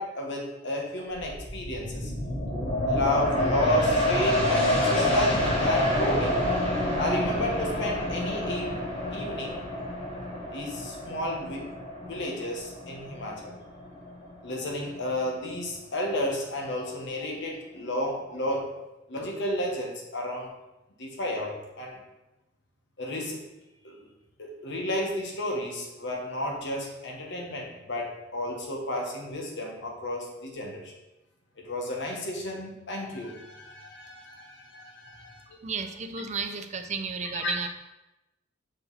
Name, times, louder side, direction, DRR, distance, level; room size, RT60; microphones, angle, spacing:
voice 1, 0.0-2.1 2.8-6.4 7.0-8.8 9.1-9.7 10.5-11.7 12.0-13.5 14.4-18.7 19.1-20.5 21.0-22.0 23.0-23.4 23.8-24.1 24.4-30.9 31.6-35.5 37.3-37.5, left 1 dB, 65° left, 0 dB, 1.5 m, -32 dB
sound 1, 1.1-14.4 14.8-14.9, left 1 dB, 30° left, 2.0 m, -28 dB
voice 2, 35.6-37.7, right 5 dB, 35° right, 6 dB, 0.6 m, -33 dB
6.4 x 5.1 x 4.3 m, 0.98 s
head